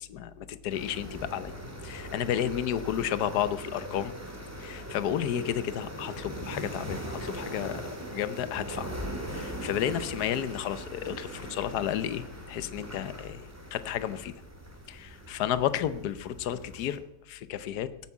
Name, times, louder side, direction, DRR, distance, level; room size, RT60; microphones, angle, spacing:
voice 1, 0.0-1.5 1.8-4.1 4.6-7.8 8.1-8.9 9.3-14.3 14.9-17.0 17.3-17.9, left 10 dB, 75° left, 13 dB, 1.3 m, -32 dB
sound 1, 0.7-17.0, equal, 10° right, 2.8 m, -40 dB
18.0 x 9.1 x 8.4 m, 0.85 s
omnidirectional pair, 1.7 m